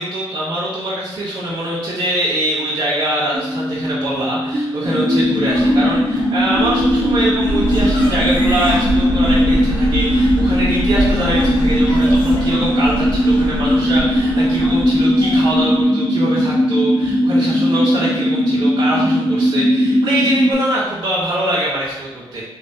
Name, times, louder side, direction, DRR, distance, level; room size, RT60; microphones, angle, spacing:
voice 1, 0.0-22.4, right 1 dB, 65° right, -10 dB, 1.3 m, -23 dB
sound 1, 3.3-8.4, left 1 dB, 40° right, 0.9 m, -25 dB
sound 2, 4.8-20.5, equal, ahead, 1.2 m, -17 dB
sound 3, 5.5-15.8, equal, 60° left, 1.4 m, -24 dB
3.8 x 3.1 x 2.8 m, 1.0 s
cardioid pair, 95°, 9 cm